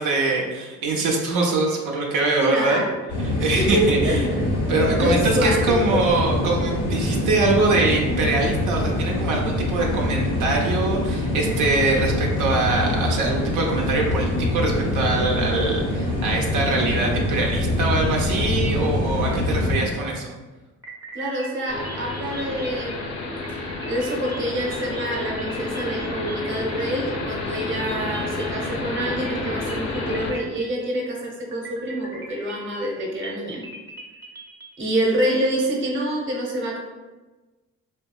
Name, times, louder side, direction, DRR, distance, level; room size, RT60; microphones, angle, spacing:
voice 1, 0.0-2.8 3.2-4.2 4.7-20.3, right 3 dB, 90° right, -1 dB, 0.5 m, -23 dB
voice 2, 2.4-3.0 3.4-4.5 5.0-5.7 21.1-23.4 23.9-33.6 34.8-36.8, right 1 dB, 40° right, -1 dB, 0.7 m, -26 dB
sound 1, 3.1-19.8, left 1 dB, 85° left, 0.9 m, -24 dB
sound 2, 20.8-27.2 27.5-28.9 29.3-31.1 31.5-34.9, right 2 dB, 10° right, 0.5 m, -41 dB
sound 3, 21.7-30.3, left 2 dB, 55° left, 0.6 m, -30 dB
2.7 x 2.2 x 2.3 m, 1.2 s
cardioid pair, 90°, 30 cm